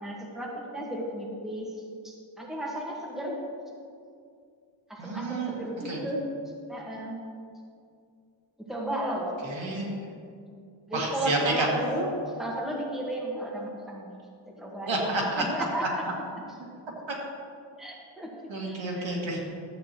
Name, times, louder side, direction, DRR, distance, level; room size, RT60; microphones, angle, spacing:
voice 1, 0.0-3.4 4.9-6.2 6.7-7.2 8.7-9.3 10.9-12.1 12.4-14.1 14.5-16.0 17.8-18.3 18.6-19.1, right 1 dB, ahead, -3 dB, 1.4 m, -34 dB
voice 2, 5.0-5.5 5.9-6.0 9.4-10.1 10.9-11.7 14.9-15.4 15.8-15.9 18.5-19.4, right 2 dB, 70° right, -2 dB, 2.0 m, -29 dB
12.5 x 8.4 x 3.0 m, 2.3 s
wide cardioid pair, 125°, 48 cm